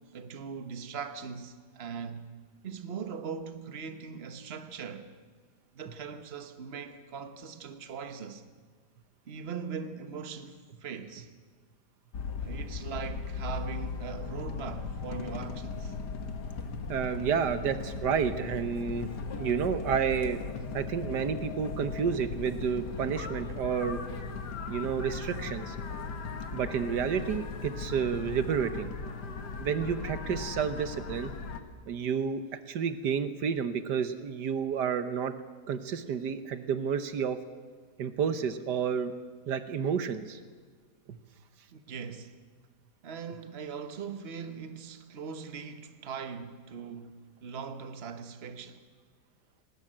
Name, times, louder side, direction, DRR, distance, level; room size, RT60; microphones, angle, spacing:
voice 1, 0.1-2.3 2.6-5.1 5.7-8.4 9.3-11.3 12.4-15.9 41.7-42.4 43.0-48.8, right 6 dB, 40° right, 1.4 m, -40 dB
sound 1, 12.1-31.6, left 4 dB, 80° left, 2.1 m, -38 dB
voice 2, 16.9-20.4 20.7-24.0 24.7-25.8 26.5-28.9 29.6-31.3 31.9-32.4 32.7-35.3 35.7-37.4 38.0-39.1 39.5-40.4, right 7 dB, 85° right, 1.7 m, -30 dB
20.0 x 18.5 x 8.9 m
omnidirectional pair, 1.8 m